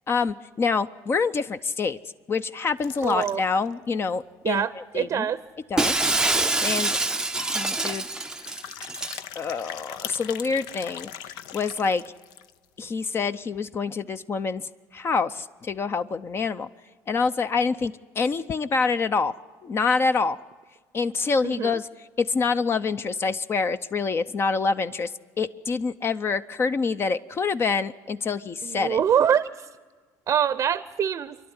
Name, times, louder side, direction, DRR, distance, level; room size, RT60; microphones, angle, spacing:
voice 1, 0.1-2.0 2.3-5.3 5.7-6.1 6.6-7.0 7.3-8.1 9.4-11.1 11.5-12.0 12.8-16.7 17.1-19.3 19.6-20.4 20.9-21.9 22.2-25.1 25.4-29.0, left 4 dB, 35° left, 11 dB, 0.6 m, -26 dB
sound 1, 2.8-3.7 4.2-4.3 4.5-4.6 5.0-5.1 6.3-6.4 6.7-6.9 8.0-12.6, left 10 dB, 80° left, 0.7 m, -40 dB
voice 2, 3.0-3.4 4.4-5.4 21.4-21.8 28.6-29.7 30.3-31.4, right 8 dB, 45° right, 15 dB, 0.7 m, -24 dB
Shatter, 5.8-9.2, right 2 dB, 10° right, 0.6 m, -25 dB
27.0 x 11.5 x 9.7 m, 1.4 s
cardioid pair, 105°, 7 cm